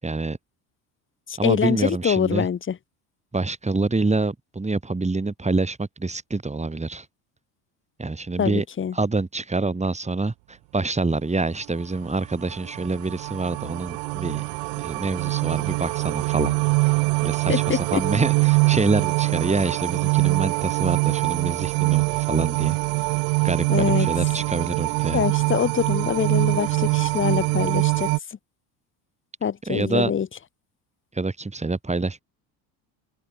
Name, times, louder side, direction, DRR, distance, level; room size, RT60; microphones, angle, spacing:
voice 1, 0.0-0.4 1.4-2.5 3.3-7.1 8.0-8.6 8.9-14.4 14.8-16.5 16.8-22.8 23.1-25.2 29.7-30.1 31.1-32.2, right 3 dB, 15° right, 5.1 m, -26 dB
voice 2, 1.3-2.8 8.4-8.9 17.5-18.0 23.7-24.1 25.1-28.1 29.4-30.3, left 8 dB, 25° left, 1.1 m, -24 dB
sound 1, 12.0-28.2, right 40 dB or more, 65° right, 0.5 m, -23 dB
open air
supercardioid pair, 90°, 49 cm